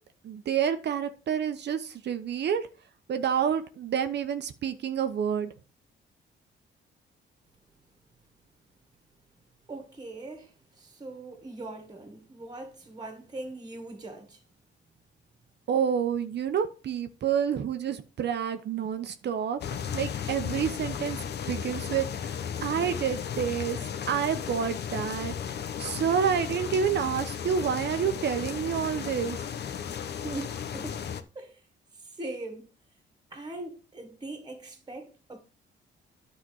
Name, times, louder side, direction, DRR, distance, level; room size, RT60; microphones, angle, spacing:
voice 1, 0.2-2.7 3.1-5.5 15.7-19.6 19.9-21.2 21.5-23.8 24.1-25.3 25.8-29.4, right 8 dB, 60° right, 0.9 m, -28 dB
voice 2, 9.7-10.5 10.8-14.4 30.2-31.0 31.4-31.6 32.2-32.7 33.3-35.4, right 2 dB, 20° right, 1.9 m, -40 dB
sound 1, 19.6-31.2, left 8 dB, 55° left, 0.9 m, -35 dB
10.0 x 4.2 x 6.4 m
cardioid pair, 90°, 20 cm